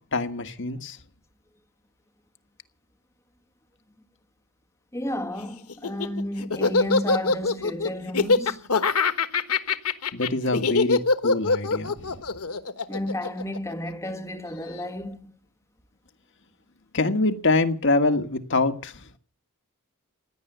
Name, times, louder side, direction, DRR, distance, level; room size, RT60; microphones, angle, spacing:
voice 1, 0.1-1.0 10.1-12.2 16.9-18.9, left 2 dB, 55° left, 1.6 m, -25 dB
voice 2, 4.9-8.6 12.9-15.3, left 1 dB, 15° left, 1.6 m, -32 dB
Laughter, 5.7-14.1, left 4 dB, 80° left, 1.3 m, -23 dB
16.5 x 10.5 x 7.9 m
head